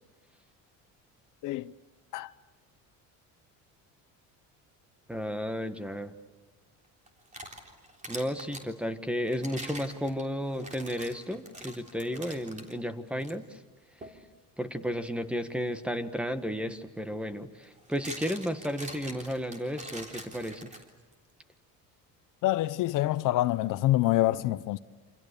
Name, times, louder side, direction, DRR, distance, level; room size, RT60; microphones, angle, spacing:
voice 1, 1.4-1.7 2.1-2.3 22.4-24.8, left 16 dB, 65° left, 0.8 m, -26 dB
voice 2, 5.1-6.1 8.1-13.6 14.6-20.8, equal, 5° right, 1.5 m, -33 dB
sound 1, 7.1-8.7 9.3-12.7 13.2-13.3 14.0-14.2 16.3-16.4 17.6-21.1, right 1 dB, 20° right, 3.6 m, -44 dB
28.5 x 26.5 x 6.8 m
cardioid pair, 135°, 34 cm